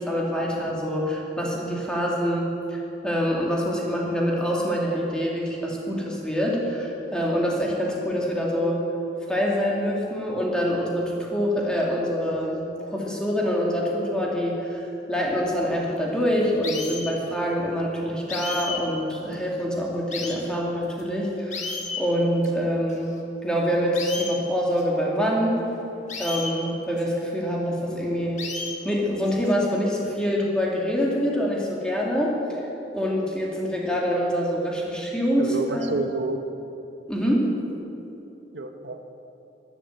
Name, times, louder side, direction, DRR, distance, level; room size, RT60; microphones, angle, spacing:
voice 1, 0.0-8.8 9.3-14.8 15.1-21.6 22.0-23.1 23.4-25.6 26.2-28.4 28.8-32.6 32.9-36.1 37.1-37.5, equal, 5° left, -3 dB, 2.3 m, -25 dB
sound 1, 16.6-17.1 18.3-18.8 19.3-19.4 20.1-20.4 21.0-21.1 21.5-22.0 22.4-22.5 22.9-23.0 23.9-24.3 24.8-24.9 26.1-26.5 27.0-27.1 28.4-28.8 29.3-29.5, left 4 dB, 40° left, 1.5 m, -32 dB
voice 2, 35.4-36.4 38.5-39.0, right 3 dB, 75° right, 6 dB, 0.9 m, -29 dB
13.0 x 11.0 x 7.7 m, 2.9 s
head